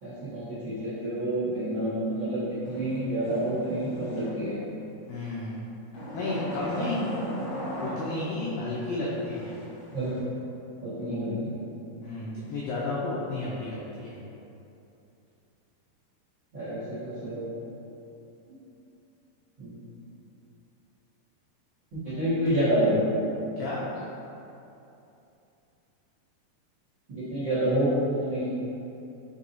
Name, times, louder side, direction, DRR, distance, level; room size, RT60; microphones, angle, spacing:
voice 1, 0.0-4.6 9.9-10.1 10.8-11.5 16.5-17.7 19.6-19.8 21.9-23.1 27.1-28.5, right 1 dB, 60° right, -16 dB, 1.2 m, -28 dB
sound 1, 2.6-4.7 5.9-8.6 9.1-10.2, equal, 65° left, 2.6 m, -38 dB
voice 2, 5.1-5.7 6.1-7.0 7.8-9.5 12.0-14.1 23.6-23.8, left 2 dB, 90° left, -6 dB, 2.0 m, -32 dB
6.9 x 2.7 x 2.6 m, 2.9 s
omnidirectional pair, 4.7 m